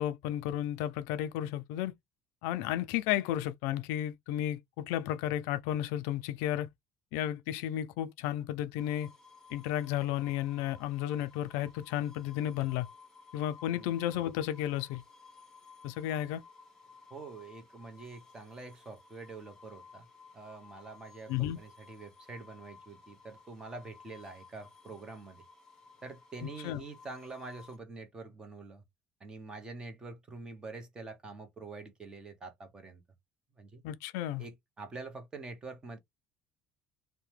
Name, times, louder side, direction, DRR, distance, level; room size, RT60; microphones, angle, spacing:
voice 1, 0.0-1.9 2.4-6.7 7.1-9.1 9.5-12.9 13.3-15.0 15.8-16.4 21.3-21.6 26.4-26.8 33.8-34.4, left 12 dB, 85° left, 0.4 m, -33 dB
sound 1, 8.8-27.8, left 4 dB, 10° left, 0.8 m, -56 dB
voice 2, 17.1-20.1 20.3-25.4 26.0-28.8 29.2-33.0 33.6-33.8 34.4-36.0, right 3 dB, 20° right, 0.8 m, -46 dB
2.7 x 2.1 x 3.1 m
cardioid pair, 155°, 4 cm